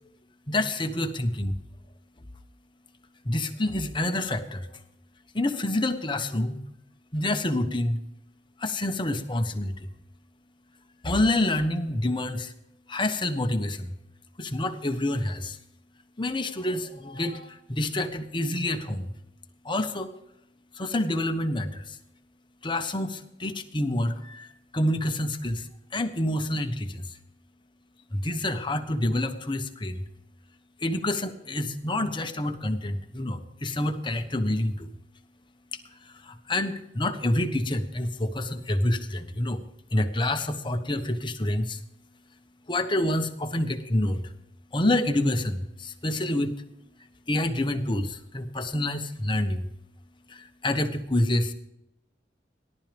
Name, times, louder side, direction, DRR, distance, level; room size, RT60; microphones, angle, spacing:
voice 1, 0.5-1.6 3.2-4.7 5.3-6.6 7.1-8.0 8.6-9.9 11.0-12.5 12.9-14.0 14.4-15.6 16.2-19.1 19.6-20.1 20.8-22.0 22.6-24.5 24.7-25.7 25.9-27.1 28.1-30.0 30.8-34.9 36.1-39.6 39.9-41.8 42.7-44.3 44.7-46.6 47.3-49.7 50.3-51.5, left 1 dB, 25° left, 6 dB, 1.1 m, -27 dB
18.0 x 12.0 x 3.5 m, 0.84 s
head